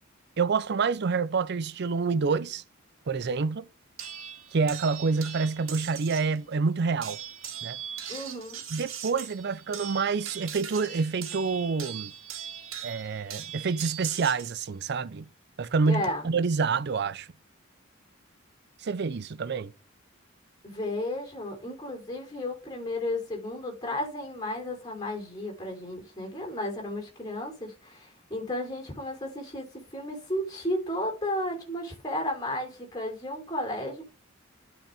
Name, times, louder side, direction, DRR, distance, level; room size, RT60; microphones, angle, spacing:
voice 1, 0.4-2.6 3.1-3.6 4.5-7.2 7.6-7.8 8.7-12.1 12.8-15.3 15.6-17.3 18.8-19.7, right 4 dB, 55° right, 0.5 m, -27 dB
sound 1, 4.0-6.4 7.0-14.5 15.6-16.1, right 9 dB, 85° right, 2.1 m, -40 dB
voice 2, 8.1-8.6 15.9-16.2 20.6-34.0, left 1 dB, 20° left, 3.4 m, -33 dB
12.0 x 5.1 x 3.5 m
head